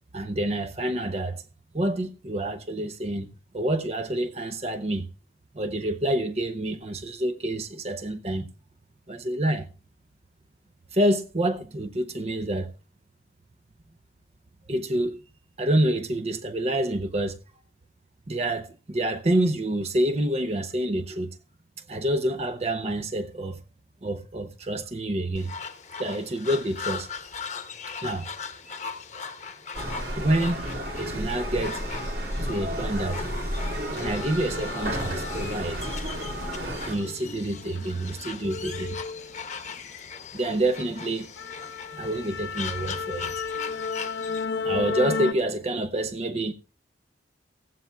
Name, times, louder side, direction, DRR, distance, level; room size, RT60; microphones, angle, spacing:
voice 1, 0.1-1.4 1.7-3.3 3.5-5.1 5.5-8.5 9.1-9.7 10.9-12.7 14.7-15.2 15.6-17.4 18.3-21.4 21.9-23.6 24.0-25.5 26.0-27.1 28.0-28.3 30.2-30.6 30.9-31.8 32.4-33.3 33.9-35.8 36.8-39.0 40.3-41.3 42.0-43.3 44.6-46.5, right 1 dB, 35° right, 0.6 m, -27 dB
sound 1, 25.4-44.5, left 6 dB, 40° left, 1.0 m, -39 dB
sound 2, 29.7-37.0, equal, 55° right, 2.9 m, -32 dB
sound 3, 32.8-33.0 33.3-35.7 36.1-39.9 40.2-40.5 40.9-41.0 41.4-45.3, left 5 dB, 75° left, 0.8 m, -34 dB
16.5 x 15.0 x 2.3 m
head